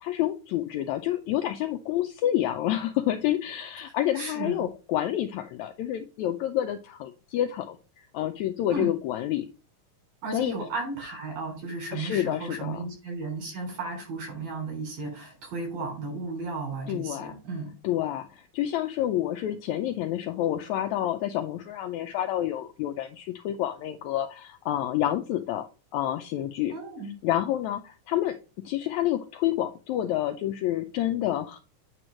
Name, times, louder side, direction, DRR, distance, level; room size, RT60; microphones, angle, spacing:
voice 1, 0.0-9.5 10.3-10.5 11.9-12.8 16.9-17.3 17.8-25.7 25.9-26.7 27.2-31.6, left 12 dB, 85° left, 6 dB, 1.6 m, -28 dB
voice 2, 4.1-4.7 8.7-8.9 10.2-17.7 26.7-27.1, right 3 dB, 85° right, 0 dB, 5.3 m, -34 dB
8.8 x 3.0 x 6.2 m, 0.34 s
omnidirectional pair, 3.8 m